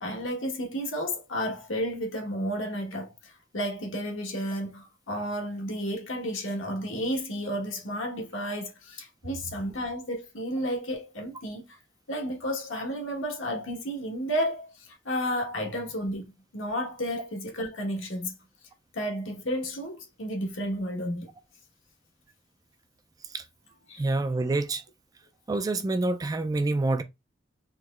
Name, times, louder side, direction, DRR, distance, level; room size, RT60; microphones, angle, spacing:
voice 1, 0.0-11.8 12.1-18.3 18.9-21.3 23.9-24.0, equal, 70° left, 1.3 m, -32 dB
voice 2, 24.0-24.8 25.5-27.0, right 2 dB, 20° right, 0.3 m, -27 dB
4.5 x 3.0 x 2.4 m
head